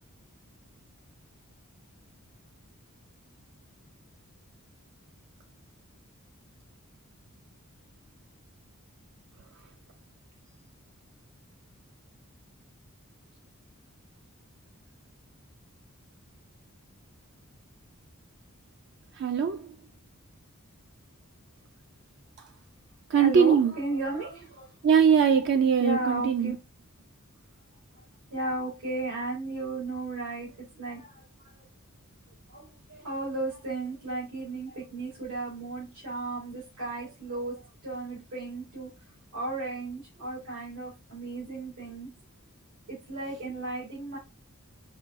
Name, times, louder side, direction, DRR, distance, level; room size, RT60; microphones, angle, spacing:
voice 1, 19.2-19.7 23.1-23.7 24.8-26.5, right 7 dB, 50° right, 0.3 m, -21 dB
voice 2, 23.1-24.8 25.8-26.6 28.3-31.6 32.5-38.9 39.3-42.1 42.9-44.2, right 2 dB, 90° right, 2.4 m, -35 dB
5.5 x 2.6 x 2.4 m
head